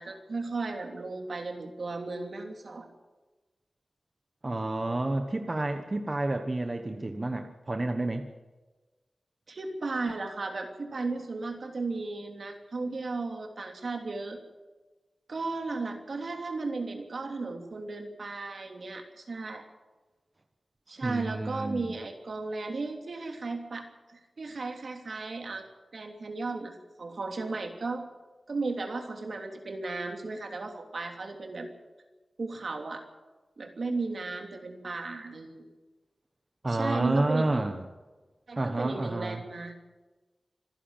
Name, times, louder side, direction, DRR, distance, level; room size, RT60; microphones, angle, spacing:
voice 1, 0.0-2.9 9.5-14.4 15.3-19.6 20.9-25.7 25.9-28.1 28.5-31.7 32.4-33.0 33.6-35.7 36.7-37.6 38.5-39.8, right 3 dB, 65° right, 4 dB, 3.1 m, -35 dB
voice 2, 4.4-8.3 21.0-21.9 36.6-37.8 38.6-39.4, right 2 dB, 35° right, 6 dB, 1.3 m, -29 dB
26.0 x 11.0 x 9.1 m, 1.2 s
wide cardioid pair, 90°, 0 cm